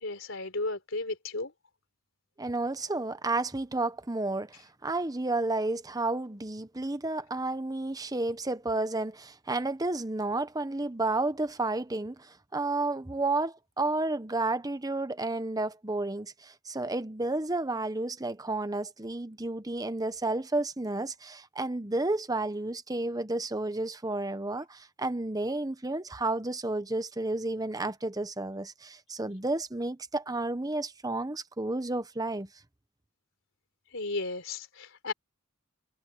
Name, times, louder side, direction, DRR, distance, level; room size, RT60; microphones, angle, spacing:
voice 1, 0.0-1.5 33.9-35.1, left 2 dB, 65° left, 4.2 m, -34 dB
voice 2, 2.4-32.5, right 2 dB, 20° right, 1.0 m, -31 dB
head